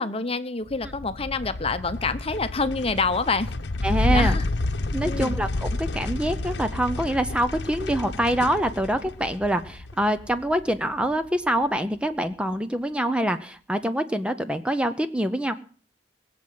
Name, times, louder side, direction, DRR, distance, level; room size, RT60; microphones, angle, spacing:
voice 1, 0.0-3.5 4.1-4.5 5.0-5.3, left 4 dB, 30° left, 11 dB, 0.9 m, -27 dB
sound 1, 0.7-11.3, left 2 dB, 65° left, 1.0 m, -30 dB
voice 2, 3.8-4.4 4.9-15.5, right 1 dB, 5° right, 10 dB, 0.6 m, -25 dB
20.5 x 7.7 x 7.6 m, 0.43 s
head